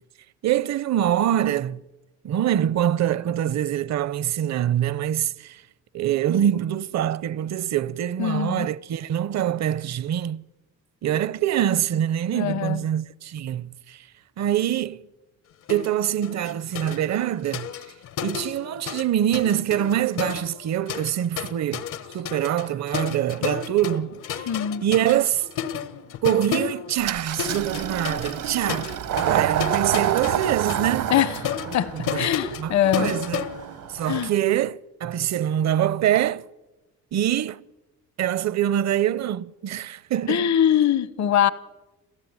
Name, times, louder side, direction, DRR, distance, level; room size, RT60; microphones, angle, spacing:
voice 1, 0.4-1.8 2.2-5.6 5.9-10.4 11.0-14.1 14.4-15.1 15.7-17.7 18.2-21.9 22.1-24.5 24.8-25.5 26.2-28.9 29.3-31.1 31.9-32.3 32.6-33.4 33.9-36.4 37.1-37.6 38.2-40.5, right 11 dB, 60° right, 0.8 m, -24 dB
voice 2, 8.2-8.7 12.3-12.8 24.5-24.8 31.1-31.4 31.7-33.1 34.1-34.3 40.3-41.5, left 10 dB, 65° left, 1.0 m, -22 dB
sound 1, 15.7-15.9 16.2-19.1 19.3-34.3, left 9 dB, 85° left, 1.5 m, -33 dB
Engine starting, 27.0-34.4, right 11 dB, 85° right, 1.6 m, -28 dB
28.5 x 14.5 x 9.7 m
cardioid pair, 90°, 30 cm